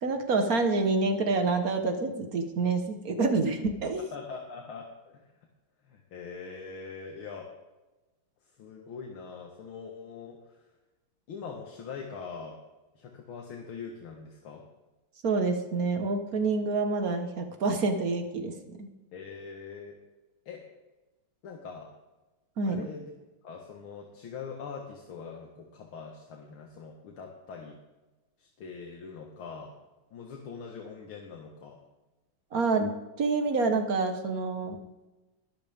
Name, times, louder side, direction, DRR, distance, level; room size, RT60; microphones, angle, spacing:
voice 1, 0.0-4.0 15.2-18.9 22.6-22.8 32.5-32.9 33.2-34.8, right 3 dB, 45° right, 6 dB, 1.6 m, -27 dB
voice 2, 4.0-5.3 5.8-7.5 8.6-10.6 11.3-12.6 13.0-14.6 19.1-20.0 20.5-20.6 21.4-21.9 22.7-23.1 23.4-27.8 28.4-29.7 30.1-31.8, left 5 dB, 75° left, 1 dB, 2.2 m, -42 dB
21.0 x 12.5 x 3.6 m, 1.1 s
omnidirectional pair, 2.3 m